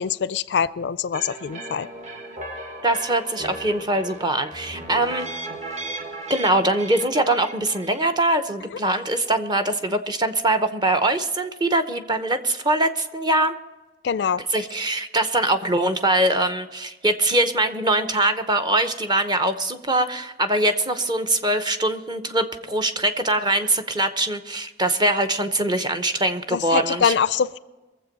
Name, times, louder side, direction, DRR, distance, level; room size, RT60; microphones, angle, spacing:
voice 1, 0.0-1.9 14.0-14.4 26.5-27.6, left 7 dB, 65° left, 0.4 m, -23 dB
sound 1, 1.1-8.1, right 2 dB, 40° right, 1.5 m, -36 dB
voice 2, 2.8-5.3 6.3-13.5 14.5-27.1, right 1 dB, 25° right, 0.8 m, -22 dB
23.0 x 7.6 x 5.3 m
head